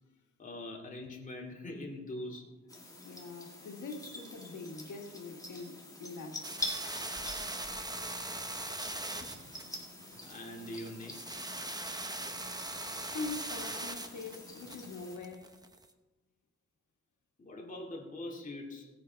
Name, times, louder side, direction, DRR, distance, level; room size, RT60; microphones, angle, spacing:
voice 1, 0.4-2.5 10.3-11.4 17.4-18.9, left 1 dB, 25° left, 2.4 m, -43 dB
sound 1, 2.7-15.2, left 1 dB, 10° left, 2.1 m, -46 dB
voice 2, 3.0-6.5 12.7-15.6, left 3 dB, 90° left, 1.7 m, -43 dB
sound 2, 6.4-15.9, right 2 dB, 15° right, 0.8 m, -41 dB
17.5 x 8.4 x 4.6 m
wide cardioid pair, 155°, 29 cm